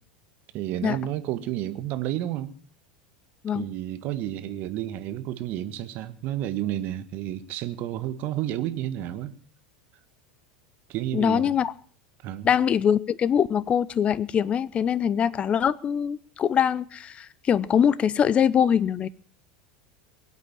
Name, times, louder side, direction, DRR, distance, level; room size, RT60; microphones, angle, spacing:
voice 1, 0.5-2.5 3.5-9.3 10.9-11.5 12.2-12.5, right 12 dB, 45° right, 1.6 m, -31 dB
voice 2, 11.1-11.7 12.4-19.1, left 8 dB, 30° left, 0.7 m, -23 dB
22.5 x 8.4 x 7.3 m
figure-of-eight pair, 80°, 4 cm